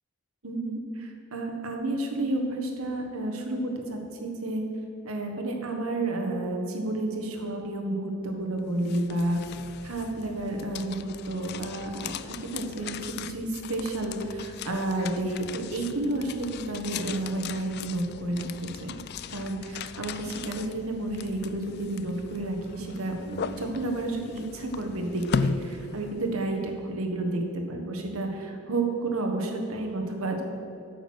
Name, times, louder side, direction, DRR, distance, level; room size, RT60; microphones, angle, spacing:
voice 1, 0.4-4.6 5.0-9.4 9.8-19.0 19.3-30.4, right 2 dB, 80° right, 3 dB, 1.5 m, -31 dB
sound 1, 8.6-26.6, left 6 dB, 50° left, 0.3 m, -38 dB
9.0 x 8.0 x 6.4 m, 2.8 s
head